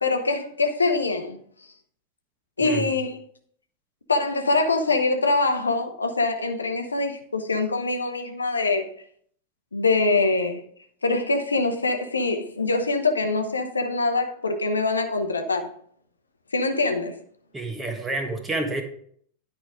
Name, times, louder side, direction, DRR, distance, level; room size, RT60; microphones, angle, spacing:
voice 1, 0.0-1.4 2.6-3.2 4.1-8.9 9.7-10.6 11.0-15.7 16.5-17.2, left 3 dB, 75° left, 0.7 m, -24 dB
voice 2, 2.6-2.9 17.5-18.8, right 2 dB, 15° right, 1.3 m, -29 dB
10.0 x 4.9 x 3.6 m
figure-of-eight pair, 90°, 0 cm